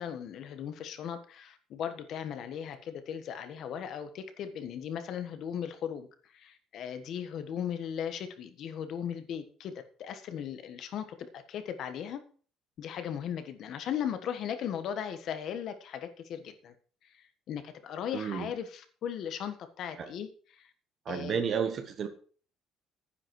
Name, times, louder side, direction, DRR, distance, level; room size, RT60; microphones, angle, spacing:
voice 1, 0.0-9.7 10.0-12.2 12.8-16.7 17.0-20.7 21.1-21.4, left 8 dB, 50° left, 9 dB, 1.4 m, -37 dB
voice 2, 18.1-18.5 20.0-20.1 21.0-22.1, right 7 dB, 35° right, 8 dB, 1.2 m, -31 dB
11.0 x 9.9 x 4.8 m, 0.42 s
cardioid pair, 180°, 0 cm